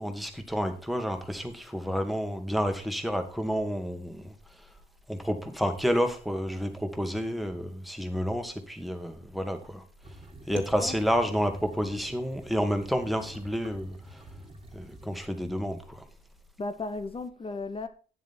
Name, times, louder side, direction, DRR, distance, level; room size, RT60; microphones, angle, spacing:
voice 1, 0.0-4.3 4.6-4.7 5.1-9.8 10.5-14.2 14.7-16.0, equal, ahead, 1.8 m, -30 dB
sound 1, 10.0-15.3, right 1 dB, 25° right, 1.9 m, -47 dB
voice 2, 10.5-11.0 11.3-11.5 16.6-17.9, left 3 dB, 30° left, 0.9 m, -35 dB
9.6 x 7.4 x 4.3 m
cardioid pair, 90°, 20 cm